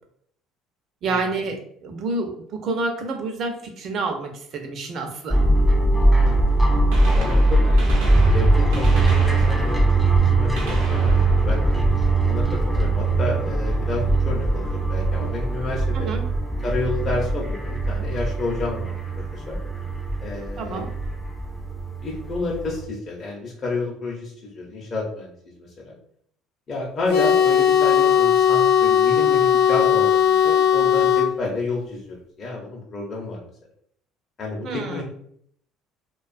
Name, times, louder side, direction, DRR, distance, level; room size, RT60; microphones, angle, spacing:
voice 1, 1.0-5.4 15.9-16.2 20.6-20.9 34.6-35.0, right 3 dB, 55° right, 4 dB, 0.6 m, -28 dB
sound 1, 5.3-22.8, right 2 dB, ahead, 0.4 m, -21 dB
voice 2, 6.1-6.4 7.1-11.8 12.3-16.1 16.6-19.0 19.3-19.6 20.2-20.9 22.0-25.9 26.7-33.5 34.4-35.0, left 2 dB, 40° left, -3 dB, 0.6 m, -30 dB
Gunshot gunfire, 6.9-12.6 14.6-14.7 15.7-15.8 17.4-17.5 18.9-19.0 19.2-19.3, right 2 dB, 85° right, 0.7 m, -35 dB
sound 2, 27.1-31.3, left 9 dB, 80° left, 0.5 m, -17 dB
2.5 x 2.3 x 2.5 m, 0.67 s
supercardioid pair, 90°, 0 cm